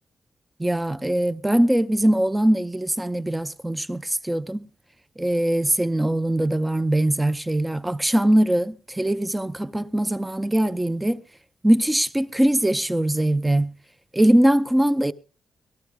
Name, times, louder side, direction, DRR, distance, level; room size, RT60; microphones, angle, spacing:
voice 1, 0.6-4.7 5.2-11.2 11.6-13.7 14.1-15.1, right 1 dB, 10° right, 0.6 m, -21 dB
19.0 x 14.0 x 3.4 m
wide cardioid pair, 145°, 0 cm